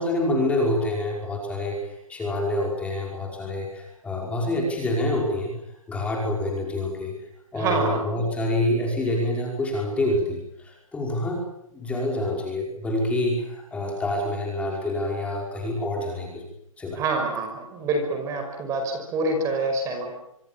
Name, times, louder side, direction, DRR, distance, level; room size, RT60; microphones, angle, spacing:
voice 1, 0.0-5.5 5.9-7.1 7.5-16.4 16.8-17.0, left 1 dB, 5° left, -1 dB, 5.2 m, -27 dB
voice 2, 7.5-8.3 17.0-20.1, right 3 dB, 15° right, 5 dB, 5.4 m, -27 dB
25.5 x 24.0 x 7.2 m, 0.79 s
hypercardioid pair, 150°, 18 cm